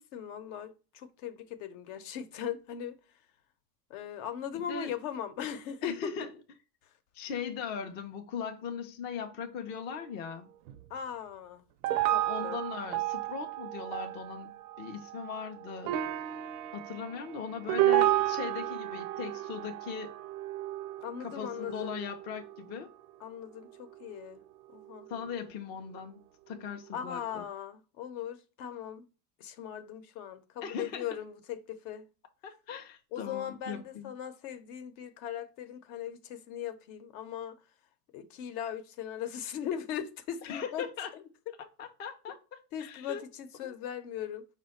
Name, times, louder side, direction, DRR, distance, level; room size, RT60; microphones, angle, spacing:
voice 1, 0.0-3.0 3.9-5.9 10.9-11.6 11.9-12.6 21.0-22.0 23.2-24.4 24.7-25.1 26.9-29.1 29.4-32.0 33.1-37.6 38.1-40.9 41.1-41.2 42.7-44.5, left 9 dB, 65° left, 0.8 m, -39 dB
voice 2, 4.5-4.9 5.8-6.3 7.1-10.5 12.2-16.0 16.7-20.2 21.2-22.9 25.1-27.4 30.6-31.1 32.4-34.1 40.4-41.1 41.8-42.3 42.8-43.2 43.6-43.7, left 6 dB, 25° left, 0.3 m, -39 dB
sound 1, 10.7-10.8 11.8-22.9 23.6-24.4 24.8-25.3 26.8-26.9, right 14 dB, 65° right, 0.5 m, -32 dB
5.0 x 2.2 x 4.0 m
supercardioid pair, 110°, 49 cm